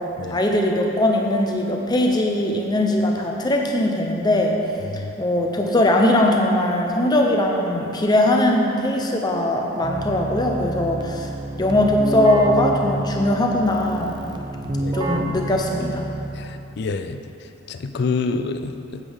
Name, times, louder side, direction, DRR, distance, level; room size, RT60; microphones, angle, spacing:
voice 1, 0.3-4.6 4.9-11.3 11.6-14.1 14.9-16.0, left 1 dB, 20° left, 1 dB, 0.7 m, -20 dB
Keyboard (musical), 9.8-16.7, right 1 dB, 20° right, 0.4 m, -29 dB
voice 2, 14.6-14.9 16.4-17.2 17.7-19.0, left 4 dB, 50° left, 9 dB, 0.4 m, -27 dB
8.6 x 8.2 x 3.5 m, 2.8 s
head